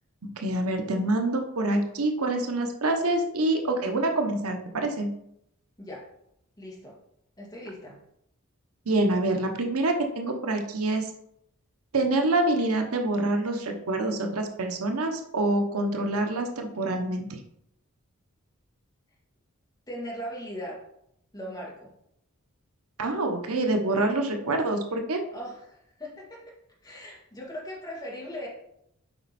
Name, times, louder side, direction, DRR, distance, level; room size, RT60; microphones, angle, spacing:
voice 1, 0.2-5.1 8.9-11.1 11.9-17.4 23.0-25.2, right 2 dB, 85° right, 4 dB, 1.1 m, -26 dB
voice 2, 6.6-7.0 7.4-8.0 19.9-20.8 21.3-21.9 25.3-26.4 26.8-28.5, equal, 15° left, -3 dB, 2.0 m, -39 dB
7.7 x 5.3 x 4.2 m, 0.76 s
head